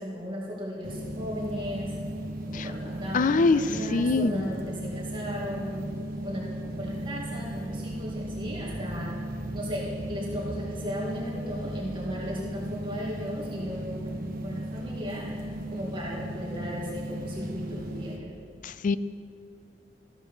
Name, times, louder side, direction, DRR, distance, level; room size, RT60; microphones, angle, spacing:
voice 1, 0.0-1.9 2.5-5.9 6.2-9.1 9.5-15.3 15.7-18.3, equal, 25° right, -5 dB, 2.3 m, -36 dB
sound 1, 0.8-18.2, right 1 dB, 50° right, 1.1 m, -36 dB
voice 2, 3.1-3.6 3.9-4.4 18.6-19.0, left 3 dB, 45° left, 15 dB, 0.4 m, -23 dB
14.0 x 7.9 x 6.3 m, 2.3 s
head